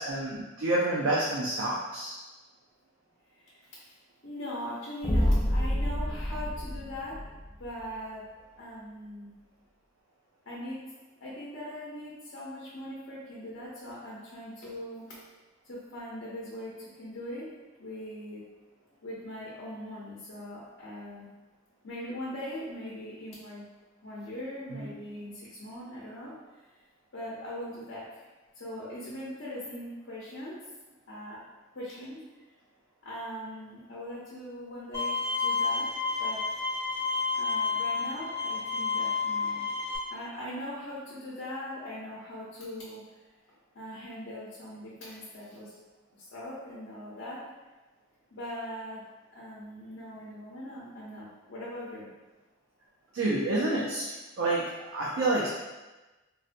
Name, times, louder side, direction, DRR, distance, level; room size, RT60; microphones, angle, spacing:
voice 1, 0.0-2.1 24.7-24.9 53.1-55.5, right 2 dB, 70° right, -4 dB, 0.5 m, -29 dB
voice 2, 3.3-3.9 4.2-7.2 7.6-8.2 8.6-9.3 10.5-10.8 11.2-15.2 15.6-17.5 17.8-18.4 19.0-21.3 21.8-23.6 24.0-26.3 27.1-28.3 28.5-30.6 31.1-31.4 31.7-32.2 33.0-35.9 36.2-36.4 37.3-39.7 40.1-43.0 43.7-45.8 46.1-47.4 48.3-49.0 49.3-52.1, left 1 dB, 65° left, -7 dB, 0.7 m, -40 dB
sound 1, 5.0-7.7, equal, 10° left, 0.3 m, -27 dB
Bowed string instrument, 34.9-40.0, left 4 dB, 20° right, 1.1 m, -30 dB
3.9 x 2.1 x 2.5 m, 1.1 s
head